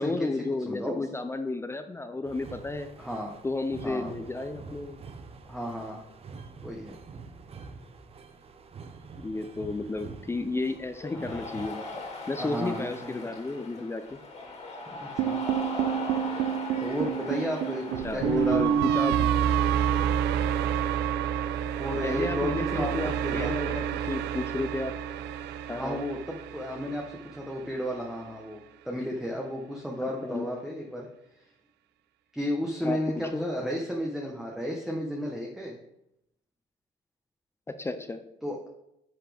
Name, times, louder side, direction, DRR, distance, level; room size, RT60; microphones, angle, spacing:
voice 1, 0.0-2.9 3.4-5.0 9.2-11.9 12.3-14.2 18.0-19.3 22.0-24.9 25.7-26.0 30.0-30.5 32.8-33.0 33.3-33.5 37.7-38.2, left 2 dB, 15° left, 8 dB, 0.5 m, -32 dB
voice 2, 0.7-1.1 3.0-3.3 3.8-4.1 5.5-6.0 6.6-6.9 11.1-11.5 12.4-13.3 14.9-15.4 16.8-18.8 21.7-23.5 25.7-31.1 32.3-35.8 38.4-38.7, equal, ahead, -2 dB, 1.1 m, -33 dB
sound 1, 2.2-11.7, right 4 dB, 35° right, 0.8 m, -46 dB
Cheering, 10.9-25.8, left 3 dB, 40° left, 2.3 m, -42 dB
sound 2, 15.2-27.4, right 9 dB, 80° right, 0.5 m, -28 dB
10.0 x 5.8 x 3.5 m, 0.83 s
cardioid pair, 110°, 17 cm